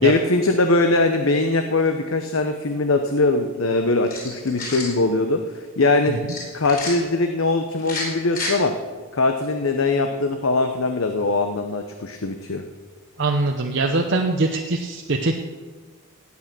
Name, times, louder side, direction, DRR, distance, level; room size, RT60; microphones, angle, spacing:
voice 1, 0.0-5.4 5.8-6.3 6.5-8.7 9.1-12.6, left 2 dB, 75° left, 6 dB, 0.9 m, -21 dB
sound 1, 4.0-4.9 6.3-6.9 7.8-8.5, left 2 dB, 45° left, 4.8 m, -30 dB
voice 2, 13.2-15.4, right 2 dB, 55° right, 2 dB, 0.8 m, -22 dB
17.0 x 8.7 x 6.1 m, 1.4 s
head